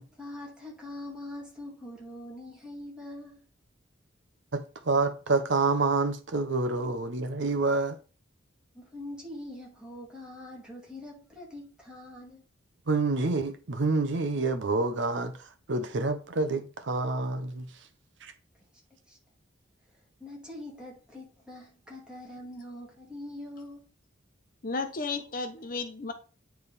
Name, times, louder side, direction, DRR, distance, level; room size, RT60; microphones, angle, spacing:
voice 1, 0.0-3.5 8.7-12.4 19.1-19.2 20.2-23.8, left 1 dB, 5° right, 2.1 m, -43 dB
voice 2, 4.5-8.0 12.9-15.3 15.7-17.7 18.2-18.3, right 3 dB, 60° right, 0.7 m, -27 dB
voice 3, 24.6-26.1, left 4 dB, 45° left, 0.7 m, -33 dB
9.0 x 3.5 x 4.1 m
head